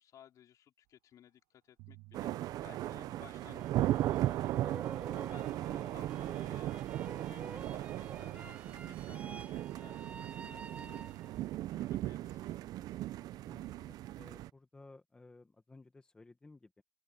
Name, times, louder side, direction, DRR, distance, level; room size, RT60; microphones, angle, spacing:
voice 1, 0.0-4.8 5.1-6.8 7.3-12.7, left 10 dB, 40° left, 4.6 m, -59 dB
sound 1, 1.1-1.4 1.6-3.9 4.6-7.1 8.1-10.5 11.0-13.6, right 25 dB, 65° right, 7.1 m, -59 dB
sound 2, 2.1-14.5, right 14 dB, 45° right, 0.6 m, -37 dB
sound 3, 3.3-11.5, right 4 dB, 15° right, 3.6 m, -51 dB
voice 2, 4.5-4.9 13.4-16.8, left 3 dB, 10° left, 1.6 m, -57 dB
open air
cardioid pair, 145°, 9 cm